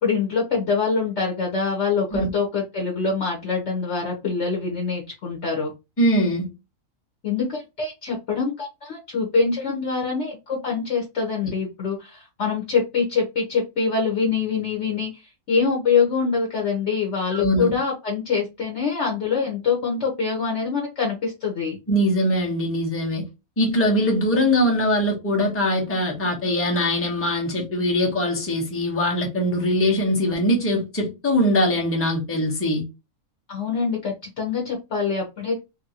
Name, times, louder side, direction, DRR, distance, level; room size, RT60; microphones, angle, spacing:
voice 1, 0.0-5.7 7.2-15.2 15.5-21.8 33.5-35.6, left 5 dB, 55° left, 1.1 m, -24 dB
voice 2, 6.0-6.5 17.3-17.7 21.9-23.2 23.6-32.8, equal, 10° left, 0.7 m, -22 dB
2.7 x 2.7 x 2.7 m
omnidirectional pair, 1.5 m